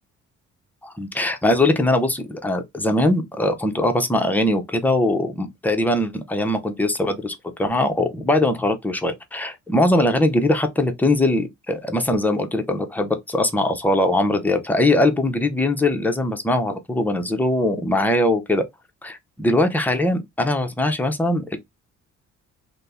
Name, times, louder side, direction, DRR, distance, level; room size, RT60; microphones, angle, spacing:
voice 1, 0.8-18.6 19.0-21.6, left 1 dB, 5° left, 0.5 m, -21 dB
2.6 x 2.0 x 3.4 m
cardioid pair, 90°, 30 cm